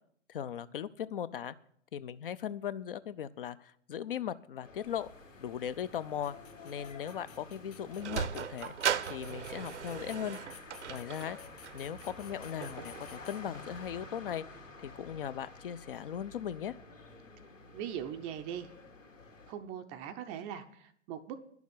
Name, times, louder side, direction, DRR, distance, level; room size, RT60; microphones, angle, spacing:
voice 1, 0.3-1.5 1.9-5.1 5.4-6.4 6.6-8.7 9.1-10.4 10.9-11.4 11.7-14.4 14.8-16.7, left 9 dB, 45° left, 15 dB, 0.6 m, -38 dB
sound 1, 4.6-19.5, left 3 dB, 85° left, 2.4 m, -51 dB
sound 2, 4.8-13.9, left 10 dB, 30° left, 1.0 m, -58 dB
Sliding door, 7.5-14.1, right 8 dB, 65° right, 0.8 m, -39 dB
voice 2, 17.7-18.7 19.5-21.4, right 9 dB, 20° right, 8 dB, 0.5 m, -40 dB
10.5 x 7.1 x 9.3 m, 0.65 s
figure-of-eight pair, 115°, 37 cm